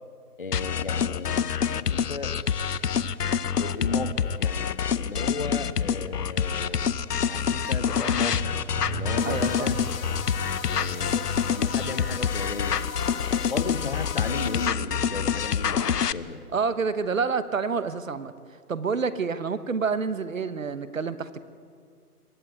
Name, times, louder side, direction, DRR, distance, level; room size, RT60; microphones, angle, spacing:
voice 1, 0.4-2.4 3.6-6.9 7.2-8.6 8.9-9.8 10.6-12.9 13.5-16.5, left 3 dB, 35° left, 10 dB, 1.1 m, -35 dB
sound 1, 0.5-16.1, left 8 dB, 85° left, 0.8 m, -26 dB
sound 2, 4.1-16.7, right 4 dB, 35° right, 1.7 m, -43 dB
sound 3, 9.2-14.7, left 6 dB, 60° left, 1.1 m, -38 dB
voice 2, 9.2-9.7 16.5-18.3 18.7-21.4, right 5 dB, 55° right, 14 dB, 1.2 m, -28 dB
22.5 x 14.0 x 9.3 m, 2.1 s
hypercardioid pair, 170°, 47 cm